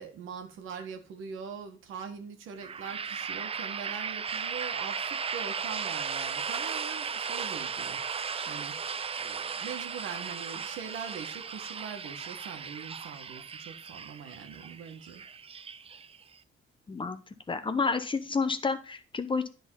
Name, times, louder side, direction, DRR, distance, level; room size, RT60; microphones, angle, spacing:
voice 1, 0.0-8.9 9.2-15.2, right 6 dB, 85° right, 1.5 m, -42 dB
sound 1, 2.6-16.4, right 6 dB, 30° right, 0.5 m, -36 dB
voice 2, 16.9-17.2 17.5-19.5, left 4 dB, 25° left, 0.8 m, -30 dB
9.9 x 4.0 x 5.5 m
cardioid pair, 90°, 20 cm